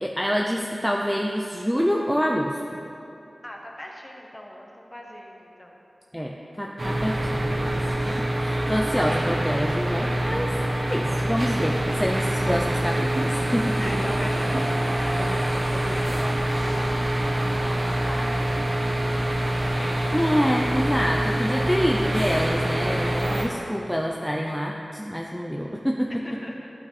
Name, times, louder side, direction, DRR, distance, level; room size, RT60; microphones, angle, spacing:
voice 1, 0.0-2.8 6.1-10.5 10.9-13.8 20.1-26.2, equal, ahead, -1 dB, 0.5 m, -27 dB
voice 2, 3.4-5.8 13.8-20.0 26.2-26.7, left 1 dB, 20° left, 0 dB, 1.1 m, -40 dB
sound 1, 6.8-23.4, right 1 dB, 45° right, 0.9 m, -25 dB
sound 2, 10.3-10.7 11.0-12.0 12.3-13.4 13.7-14.8 15.2-16.2 16.5-17.6, right 2 dB, 80° right, 1.0 m, -35 dB
11.5 x 5.7 x 3.3 m, 2.9 s
wide cardioid pair, 70°, 0 cm